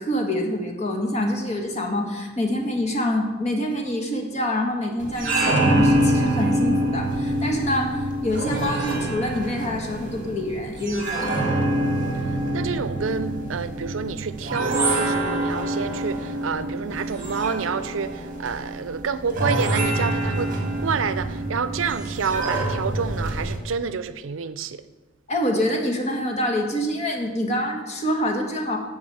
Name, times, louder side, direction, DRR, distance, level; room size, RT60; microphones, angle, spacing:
voice 1, 0.0-11.4 25.3-28.8, left 1 dB, 35° left, 1.6 m, -26 dB
sound 1, 5.0-23.6, right 1 dB, 45° right, 2.0 m, -25 dB
voice 2, 12.5-24.8, right 5 dB, 75° right, 0.5 m, -28 dB
11.0 x 4.7 x 7.9 m
head